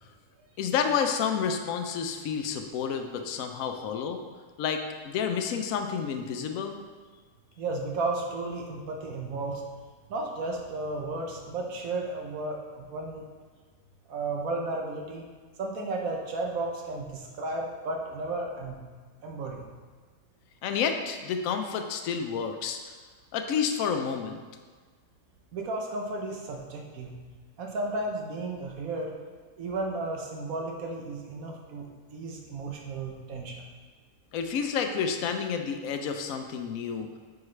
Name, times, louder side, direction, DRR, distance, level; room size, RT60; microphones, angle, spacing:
voice 1, 0.6-4.2 4.6-6.8 20.6-22.9 23.3-24.4 34.3-37.2, left 6 dB, 75° left, 5 dB, 1.0 m, -30 dB
voice 2, 7.6-9.6 10.1-13.3 14.1-15.3 15.6-18.8 19.2-19.6 25.5-27.1 27.6-29.2 29.6-33.6, right 2 dB, 80° right, 0 dB, 1.3 m, -33 dB
9.4 x 4.8 x 3.2 m, 1.5 s
omnidirectional pair, 1.5 m